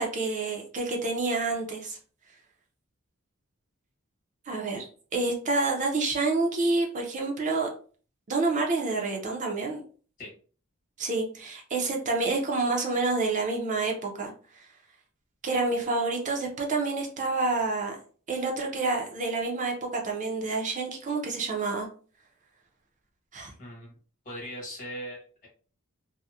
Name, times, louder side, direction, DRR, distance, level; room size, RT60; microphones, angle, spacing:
voice 1, 0.0-2.0 4.5-4.8 5.1-7.7 8.3-9.8 11.0-14.3 15.4-18.0 18.3-21.9 23.3-23.5, right 3 dB, 35° right, 0 dB, 0.5 m, -28 dB
voice 2, 24.2-25.5, equal, 40° left, -2 dB, 1.1 m, -39 dB
2.7 x 2.0 x 2.3 m, 0.41 s
head